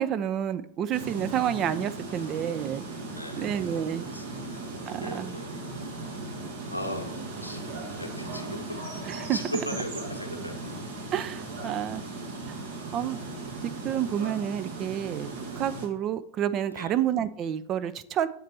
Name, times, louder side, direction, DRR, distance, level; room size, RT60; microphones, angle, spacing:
voice 1, 0.0-2.8 3.4-4.1 4.9-5.3 9.0-9.4 11.1-12.1 12.5-12.6 12.9-13.2 13.8-15.3 15.6-18.3, right 10 dB, 30° right, 12 dB, 0.4 m, -29 dB
sound 1, 0.9-15.9, right 3 dB, 60° right, 1.2 m, -37 dB
voice 2, 3.0-3.7 4.1-5.7 6.7-7.6 8.0-8.8 9.3-10.8 16.7-17.0, left 1 dB, 85° left, 3 dB, 0.9 m, -38 dB
7.4 x 4.1 x 4.3 m, 0.73 s
figure-of-eight pair, 90°, 0 cm